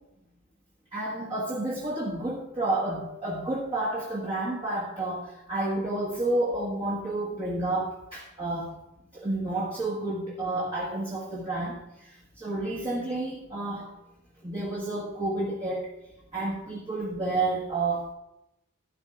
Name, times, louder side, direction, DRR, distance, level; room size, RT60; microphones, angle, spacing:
voice 1, 0.9-8.7 9.1-13.9 14.4-15.9 16.3-18.1, right 2 dB, 25° right, -4 dB, 1.5 m, -30 dB
11.5 x 11.0 x 2.5 m, 0.88 s
head